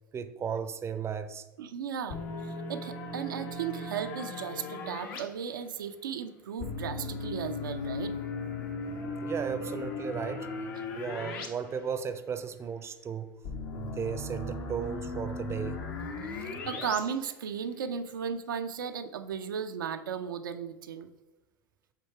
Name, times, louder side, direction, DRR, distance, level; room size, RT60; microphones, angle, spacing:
voice 1, 0.1-1.4 9.2-10.5 10.9-13.4 13.7-15.9, right 7 dB, 25° right, 0.5 m, -35 dB
voice 2, 1.6-8.1 16.2-21.1, right 7 dB, 85° right, 0.5 m, -36 dB
sound 1, 2.1-5.2 6.6-11.5 11.8-11.9 13.4-17.0, left 3 dB, 70° left, 1.1 m, -37 dB
7.4 x 2.8 x 4.6 m
hypercardioid pair, 90°, 11 cm